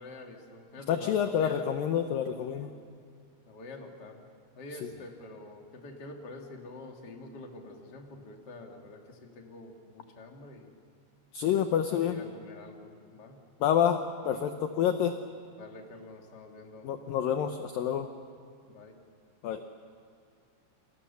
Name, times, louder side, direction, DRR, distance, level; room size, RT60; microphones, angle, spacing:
voice 1, 0.0-1.7 2.5-2.8 3.5-4.2 4.6-10.7 11.5-13.4 15.6-16.9 18.7-18.9, left 2 dB, 30° left, 2 dB, 2.2 m, -47 dB
voice 2, 0.9-2.7 11.3-12.2 13.6-15.2 16.8-18.1 19.4-19.6, left 9 dB, 70° left, 7 dB, 2.2 m, -28 dB
29.0 x 25.5 x 7.0 m, 2.4 s
omnidirectional pair, 5.1 m